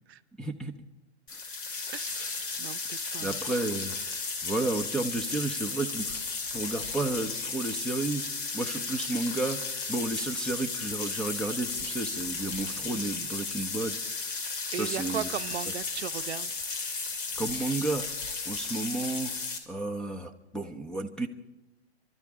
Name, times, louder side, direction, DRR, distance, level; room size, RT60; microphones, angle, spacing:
voice 1, 0.4-0.7 2.2-2.3 3.2-4.0 4.4-6.2 6.5-8.2 8.5-9.6 9.9-14.0 14.8-15.3 17.4-18.0 18.5-19.3 19.7-21.3, right 2 dB, ahead, 5 dB, 0.8 m, -32 dB
sound 1, 1.3-19.6, left 4 dB, 50° left, 2.6 m, -34 dB
voice 2, 1.9-2.3 2.6-3.4 14.7-16.5, right 10 dB, 70° right, 13 dB, 0.7 m, -37 dB
29.5 x 12.5 x 3.7 m, 1.0 s
hypercardioid pair, 130°, 33 cm